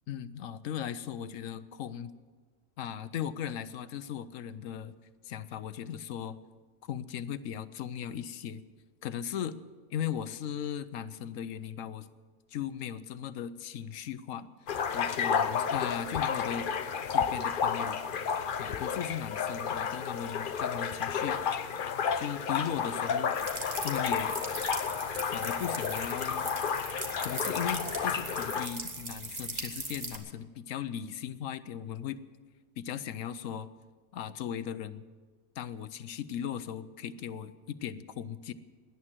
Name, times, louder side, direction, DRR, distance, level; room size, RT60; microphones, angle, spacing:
voice 1, 0.1-2.1 2.8-4.9 5.2-6.4 6.8-8.6 9.0-9.6 9.9-12.1 12.5-14.5 14.9-16.7 17.1-18.0 18.6-21.4 22.1-23.3 23.8-24.3 25.3-26.5 27.2-32.2 32.8-33.7 34.1-35.0 35.6-38.5, left 9 dB, 80° left, 14 dB, 1.1 m, -37 dB
sound 1, 14.7-28.7, left 6 dB, 50° left, 0.7 m, -31 dB
sound 2, 23.3-30.2, right 2 dB, 35° right, 1.7 m, -40 dB
17.5 x 11.0 x 7.4 m, 1.4 s
omnidirectional pair, 1.3 m